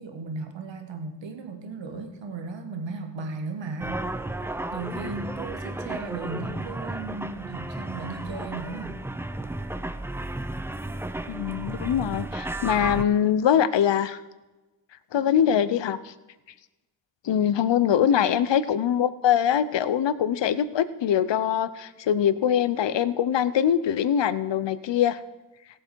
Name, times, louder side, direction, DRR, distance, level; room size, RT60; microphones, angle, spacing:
voice 1, 0.0-4.0 4.4-9.0, right 3 dB, 85° right, 6 dB, 1.4 m, -36 dB
sound 1, 3.8-13.0, right 1 dB, 5° right, 0.4 m, -33 dB
voice 2, 11.3-14.2 15.1-16.1 17.2-25.2, left 9 dB, 75° left, 15 dB, 0.7 m, -23 dB
17.0 x 7.8 x 4.6 m, 1.1 s
wide cardioid pair, 95°, 44 cm